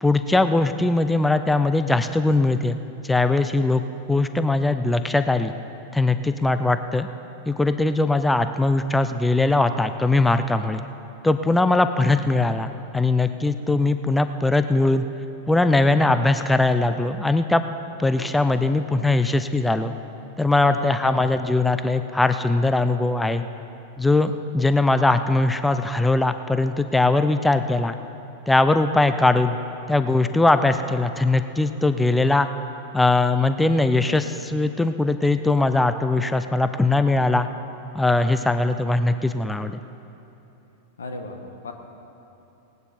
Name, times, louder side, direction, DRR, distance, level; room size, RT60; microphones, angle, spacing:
voice 1, 0.0-3.8 4.1-5.5 5.9-7.1 7.5-10.8 11.2-15.0 15.5-17.6 18.0-19.9 20.4-23.4 24.0-28.0 28.5-29.6 29.9-32.5 32.9-37.5 37.9-39.8, left 2 dB, 10° left, 10 dB, 0.5 m, -20 dB
voice 2, 20.6-21.5 34.0-34.2 41.0-41.7, left 2 dB, 85° left, 5 dB, 1.3 m, -36 dB
18.0 x 9.4 x 4.4 m, 2.9 s
hypercardioid pair, 100°, 0 cm